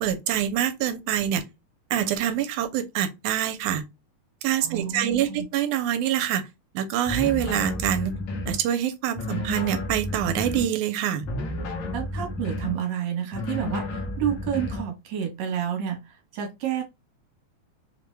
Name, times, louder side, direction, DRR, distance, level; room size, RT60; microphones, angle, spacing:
voice 1, 0.0-1.4 1.9-3.8 4.4-6.4 6.7-8.1 8.5-11.2, right 10 dB, 85° right, 2.0 m, -25 dB
voice 2, 4.6-5.4 11.9-16.8, right 9 dB, 65° right, 2.1 m, -30 dB
sound 1, 7.1-8.6 9.1-10.7 11.2-12.8 13.3-14.9, left 2 dB, 75° left, 1.1 m, -31 dB
5.3 x 2.2 x 3.1 m
omnidirectional pair, 3.5 m